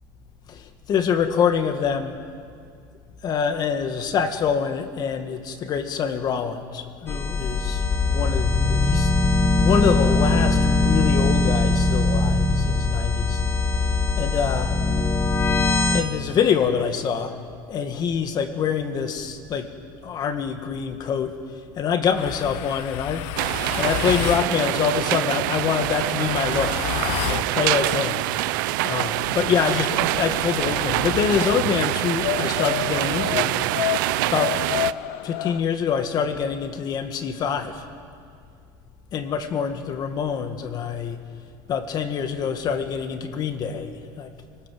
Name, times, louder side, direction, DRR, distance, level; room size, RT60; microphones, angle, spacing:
voice 1, 0.5-2.2 3.2-9.1 9.6-13.4 13.7-14.7 15.9-17.3 17.7-19.7 20.0-23.5 23.8-26.9 27.3-28.3 28.8-33.7 34.3-34.6 35.2-37.9 39.1-41.2 41.7-44.3, left 7 dB, 40° left, 8 dB, 1.9 m, -25 dB
sound 1, 7.1-16.0, left 2 dB, 20° left, 1.6 m, -21 dB
sound 2, 22.1-24.5 25.5-27.5 29.2-31.5 32.2-35.6, left 15 dB, 70° left, 0.9 m, -30 dB
sound 3, 23.4-34.9, right 18 dB, 90° right, 0.6 m, -25 dB
26.5 x 19.5 x 7.8 m, 2.2 s
cardioid pair, 135°, 10 cm